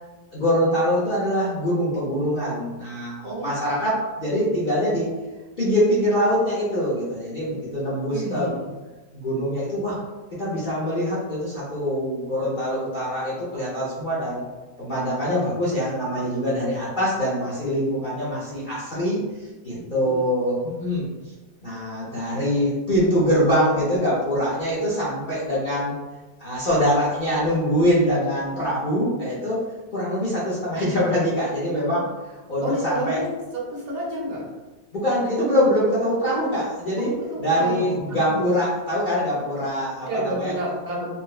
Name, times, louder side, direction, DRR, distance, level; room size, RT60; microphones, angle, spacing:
voice 1, 0.3-5.1 5.6-8.5 9.1-10.0 10.4-14.4 14.8-19.2 19.6-21.1 21.6-25.9 26.4-29.6 29.9-32.1 32.5-33.2 34.9-37.1 37.4-40.5, equal, 50° left, -10 dB, 0.6 m, -23 dB
voice 2, 3.2-3.9 8.1-8.7 20.0-20.1 32.6-33.3 33.5-34.5 37.1-38.5 40.1-41.1, right 1 dB, 75° right, -4 dB, 1.4 m, -30 dB
4.0 x 2.2 x 2.3 m, 1.2 s
omnidirectional pair, 1.8 m